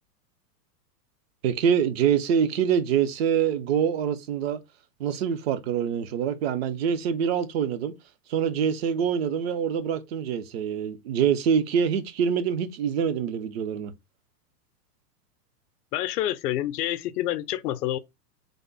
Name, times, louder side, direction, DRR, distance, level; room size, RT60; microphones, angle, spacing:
voice 1, 1.4-4.6 5.0-7.9 8.3-13.9, right 8 dB, 45° right, 0.4 m, -25 dB
voice 2, 15.9-18.0, left 13 dB, 75° left, 0.5 m, -28 dB
3.4 x 2.0 x 3.8 m
supercardioid pair, 145°, 48 cm